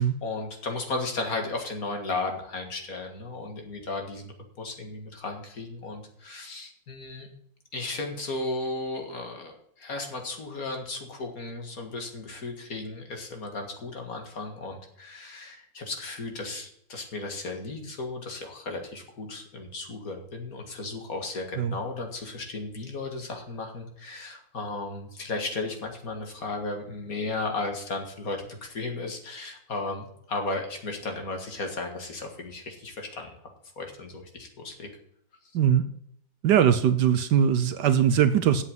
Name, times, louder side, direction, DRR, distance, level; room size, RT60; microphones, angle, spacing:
voice 1, 0.0-7.3 7.7-33.3 33.8-34.9, left 3 dB, 50° left, 3 dB, 2.2 m, -35 dB
voice 2, 36.4-38.6, right 9 dB, 70° right, 12 dB, 1.2 m, -21 dB
8.3 x 7.3 x 7.8 m, 0.71 s
omnidirectional pair, 2.1 m